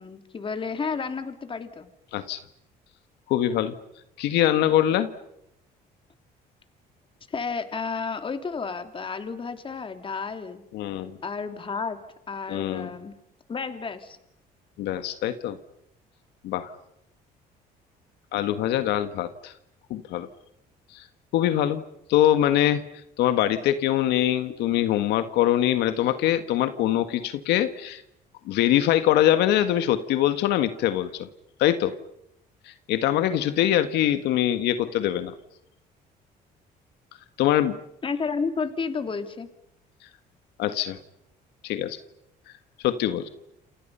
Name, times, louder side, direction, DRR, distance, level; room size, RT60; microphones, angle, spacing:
voice 1, 0.0-1.9 7.3-10.6 11.2-12.0 12.3-13.1 13.5-14.2 38.0-39.5, left 5 dB, 30° left, 8 dB, 2.9 m, -31 dB
voice 2, 3.3-3.7 4.2-5.1 10.7-11.2 12.5-12.9 14.8-15.6 16.4-16.7 18.3-19.5 19.9-20.3 20.9-21.1 21.3-21.8 22.1-22.8 23.2-28.0 28.4-31.3 31.6-31.9 32.7-35.3 37.4-37.8 40.6-41.0 41.6-42.0 42.8-43.3, left 12 dB, 85° left, 10 dB, 1.6 m, -23 dB
29.5 x 28.5 x 5.6 m, 0.79 s
cardioid pair, 110°, 17 cm